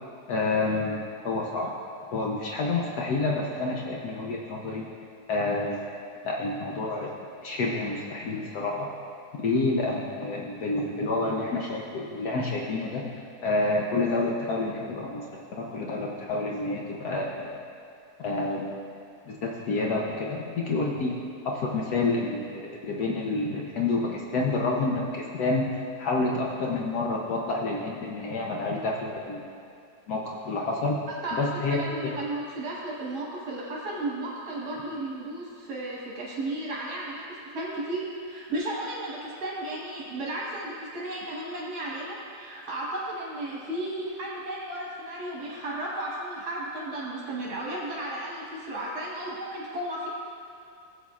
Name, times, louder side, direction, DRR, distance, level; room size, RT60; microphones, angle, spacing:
voice 1, 0.3-1.7 2.1-4.8 5.3-5.8 6.2-7.1 7.4-8.9 9.4-13.1 13.4-17.5 18.2-18.7 19.2-21.2 21.4-25.7 26.0-29.5 30.1-31.0 31.3-31.8, left 3 dB, 75° left, -2 dB, 1.3 m, -28 dB
voice 2, 31.7-50.1, right 1 dB, 70° right, -5 dB, 1.9 m, -34 dB
16.5 x 7.9 x 2.4 m, 2.4 s
omnidirectional pair, 1.7 m